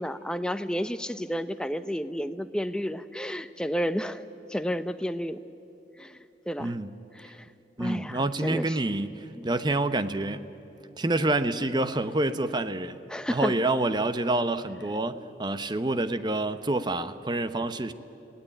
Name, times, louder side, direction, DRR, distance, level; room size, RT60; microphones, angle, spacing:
voice 1, 0.0-5.4 6.0-6.2 6.5-6.7 7.1-7.5 7.8-8.8 9.4-9.5 13.1-13.6, equal, 5° left, 10 dB, 0.7 m, -31 dB
voice 2, 6.6-6.9 7.8-9.1 9.4-10.5 11.0-13.0 13.3-17.9, right 2 dB, 25° right, 12 dB, 0.8 m, -27 dB
28.5 x 17.5 x 10.0 m, 2.9 s
head